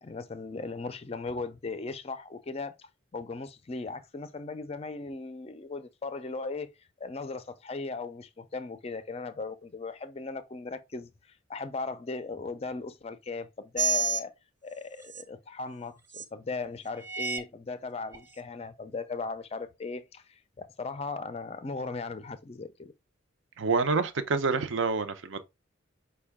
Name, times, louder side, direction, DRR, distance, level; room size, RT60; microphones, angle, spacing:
voice 1, 0.0-6.7 7.0-11.1 11.5-14.3 14.6-20.2 20.6-22.9, left 3 dB, 30° left, 0.4 m, -37 dB
sound 1, 13.8-14.2 15.0-15.2 16.1-16.2 17.0-17.4 18.1-18.2, right 5 dB, 15° right, 0.7 m, -29 dB
voice 2, 23.6-25.4, right 4 dB, 65° right, 0.5 m, -27 dB
5.3 x 2.2 x 3.4 m
head